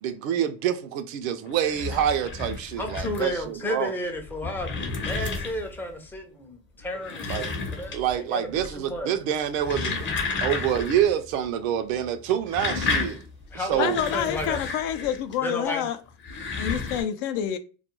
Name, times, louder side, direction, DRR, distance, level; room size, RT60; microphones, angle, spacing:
voice 1, 0.0-3.9 7.3-7.5 7.9-10.0 10.4-13.2 13.7-14.0, right 10 dB, 85° right, 0.5 m, -26 dB
sound 1, 1.5-3.4 4.1-5.8 6.8-8.2 8.5-9.0 9.4-11.1 11.4-11.5 12.3-15.3 16.1-17.0, left 4 dB, 30° left, 0.8 m, -32 dB
voice 2, 2.8-9.1 13.5-14.6 15.4-15.8, left 1 dB, 5° left, 0.4 m, -33 dB
voice 3, 13.8-16.0 16.6-17.6, left 10 dB, 65° left, 0.5 m, -28 dB
2.3 x 2.1 x 2.9 m
supercardioid pair, 115°, 39 cm